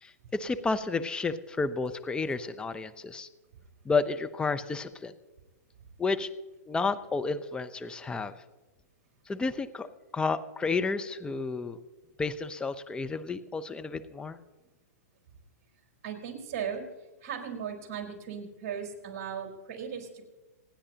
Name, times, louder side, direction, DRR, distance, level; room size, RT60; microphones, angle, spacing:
voice 1, 0.0-3.3 3.8-5.1 6.0-6.3 6.7-8.3 9.3-9.9 10.1-11.8 12.2-14.4, left 4 dB, 10° left, 11 dB, 0.7 m, -31 dB
voice 2, 16.0-16.8 17.2-20.2, right 7 dB, 50° right, 3 dB, 4.0 m, -37 dB
26.5 x 10.0 x 2.9 m, 1.2 s
hypercardioid pair, 125°, 9 cm